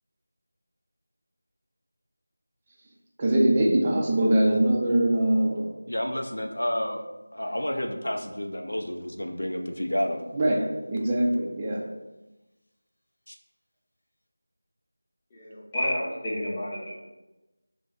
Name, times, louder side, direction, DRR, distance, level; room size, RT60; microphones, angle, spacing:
voice 1, 3.2-5.7 10.3-11.8, right 1 dB, 25° right, -1 dB, 0.4 m, -22 dB
voice 2, 5.9-7.0 7.3-10.2 13.3-13.4, left 1 dB, 75° left, 4 dB, 0.4 m, -30 dB
voice 3, 15.3-17.0, equal, 20° left, -7 dB, 0.7 m, -30 dB
2.5 x 2.4 x 3.8 m, 1.1 s
figure-of-eight pair, 170°, 0 cm